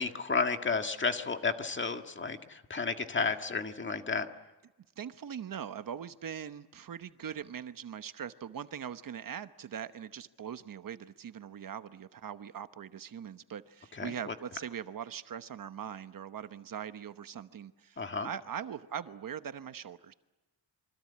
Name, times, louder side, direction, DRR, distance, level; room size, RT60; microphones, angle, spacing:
voice 1, 0.0-4.3 13.9-14.3 18.0-18.3, left 4 dB, 30° left, 6 dB, 1.8 m, -32 dB
voice 2, 5.0-20.1, right 8 dB, 55° right, 11 dB, 1.0 m, -41 dB
27.5 x 25.0 x 8.6 m, 1.1 s
wide cardioid pair, 145°, 41 cm